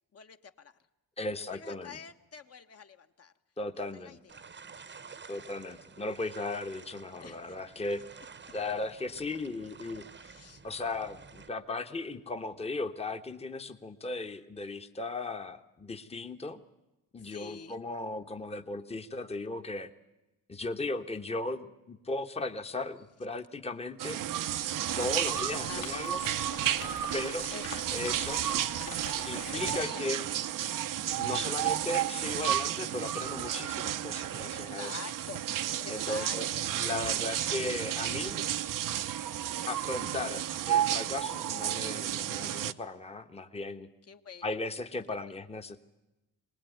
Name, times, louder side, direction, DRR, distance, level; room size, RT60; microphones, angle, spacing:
voice 1, 0.1-0.8 1.4-3.3 3.9-4.4 5.0-5.6 7.2-7.6 10.2-10.6 17.2-17.8 25.7-25.9 27.5-27.8 29.4-30.3 31.5-31.7 34.5-36.7 44.1-44.5 45.1-45.3, left 5 dB, 40° left, 8 dB, 1.3 m, -47 dB
voice 2, 1.2-2.0 3.6-4.2 5.3-8.0 8.5-10.0 10.6-16.6 17.1-19.9 20.5-24.2 25.0-26.2 27.1-27.5 27.9-28.4 29.3-30.2 31.2-34.9 35.9-36.5 36.8-38.5 39.7-43.9 44.4-45.8, left 2 dB, 15° left, 7 dB, 1.1 m, -36 dB
sound 1, 4.3-11.5, right 5 dB, 30° right, 1.0 m, -51 dB
sound 2, 24.0-42.7, right 11 dB, 55° right, 0.8 m, -32 dB
Rain, 24.9-29.9, left 7 dB, 60° left, 2.4 m, -45 dB
23.0 x 19.5 x 9.4 m, 1.0 s
cardioid pair, 110°, 39 cm